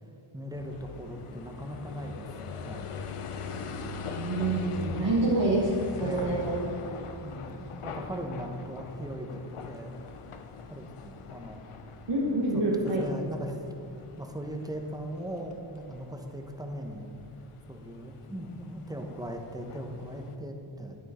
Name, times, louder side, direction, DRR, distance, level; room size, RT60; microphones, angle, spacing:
voice 1, 0.3-2.9 3.5-4.0 5.0-5.3 6.0-6.6 7.2-9.9 10.7-11.6 12.5-13.9 14.2-17.1 17.7-21.0, equal, 5° right, 3 dB, 1.0 m, -39 dB
sound 1, 0.5-20.4, left 5 dB, 85° left, 0.7 m, -42 dB
voice 2, 4.2-5.7 6.0-6.6 12.1-13.1, right 2 dB, 60° right, -5 dB, 1.5 m, -27 dB
9.3 x 9.2 x 4.3 m, 2.6 s
wide cardioid pair, 70°, 50 cm